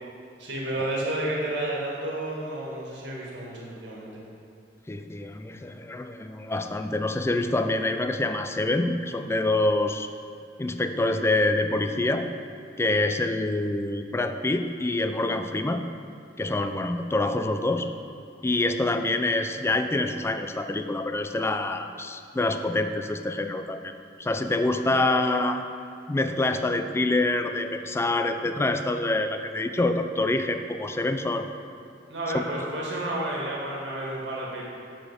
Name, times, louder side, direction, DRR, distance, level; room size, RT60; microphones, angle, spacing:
voice 1, 0.4-4.1 24.9-25.2 32.1-34.6, right 1 dB, 85° right, -4 dB, 1.9 m, -31 dB
voice 2, 4.9-10.1 10.6-12.3 12.8-15.8 16.4-17.9 18.4-25.6 26.1-31.5 32.3-32.4, left 2 dB, 15° left, 7 dB, 0.3 m, -26 dB
7.7 x 4.3 x 6.3 m, 2.6 s
head